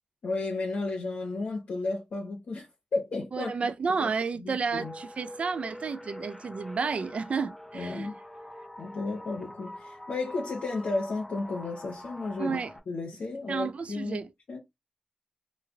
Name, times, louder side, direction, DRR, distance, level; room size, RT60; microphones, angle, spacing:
voice 1, 0.2-3.5 4.0-4.1 4.4-4.9 7.7-8.2 8.8-12.6 12.9-14.2 14.5-14.6, left 3 dB, 90° left, 0.9 m, -33 dB
voice 2, 3.3-8.1 12.4-12.7 13.5-14.3, right 5 dB, 65° right, 0.4 m, -31 dB
sound 1, 4.7-12.8, left 1 dB, 5° left, 0.7 m, -45 dB
3.2 x 2.2 x 3.6 m
wide cardioid pair, 85°, 2 cm